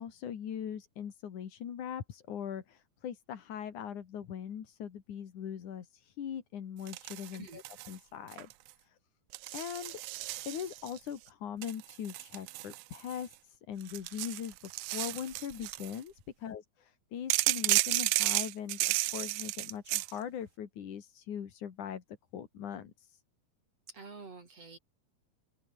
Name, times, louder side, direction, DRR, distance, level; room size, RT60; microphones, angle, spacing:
voice 1, 0.0-8.5 8.8-9.0 9.5-22.0 22.3-23.2, left 8 dB, 75° left, 3.7 m, -41 dB
sound 1, 6.9-8.0 8.3-8.7 9.3-11.0 11.6-13.3 13.8-16.0 17.3-20.1, right 17 dB, 80° right, 1.4 m, -33 dB
voice 2, 7.3-7.6 23.9-24.8, right 4 dB, 55° right, 5.3 m, -48 dB
open air
omnidirectional pair, 3.5 m